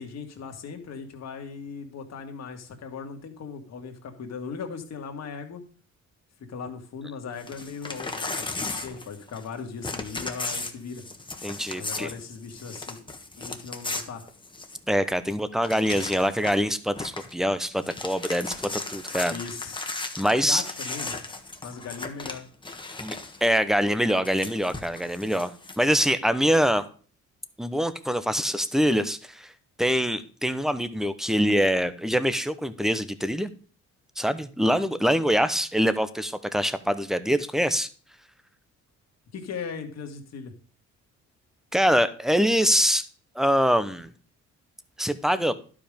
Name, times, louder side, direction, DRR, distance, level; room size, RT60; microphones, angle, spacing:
voice 1, 0.0-5.6 6.5-11.0 11.8-13.0 13.4-14.3 19.3-19.8 20.4-21.2 21.6-22.5 39.3-40.5, left 5 dB, 60° left, 4 dB, 2.0 m, -38 dB
Crumpling crinkling / Tearing, 7.4-9.5 9.8-14.9 15.3-15.4 15.6-16.7 17.0-17.3 17.7-23.4 24.2-25.8, left 3 dB, 15° left, 1.4 m, -36 dB
voice 2, 11.4-12.1 14.9-19.3 20.2-20.6 23.0-23.2 23.4-26.8 27.6-29.5 29.8-33.5 34.2-37.9 41.7-43.1 43.3-44.1 45.0-45.5, equal, ahead, 13 dB, 0.8 m, -24 dB
11.5 x 5.1 x 5.2 m, 0.41 s
cardioid pair, 90°, 30 cm